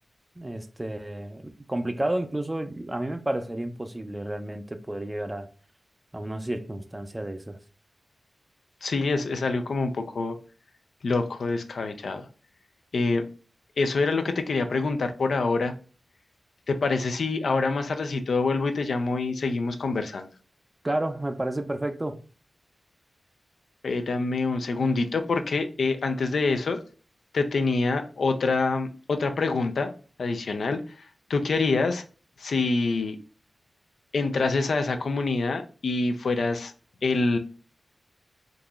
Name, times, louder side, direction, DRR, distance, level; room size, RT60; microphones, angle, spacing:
voice 1, 0.4-1.4 1.7-5.5 6.1-7.6 20.8-22.2, right 1 dB, 20° right, 0.4 m, -31 dB
voice 2, 8.8-10.3 11.0-12.3 12.9-13.2 13.8-15.7 16.7-20.3 23.8-26.8 27.3-29.9 30.2-30.8 31.3-32.0 32.4-33.2 34.1-36.7 37.0-37.4, left 3 dB, 85° left, 0.4 m, -26 dB
3.7 x 2.9 x 2.3 m
wide cardioid pair, 95°, 0 cm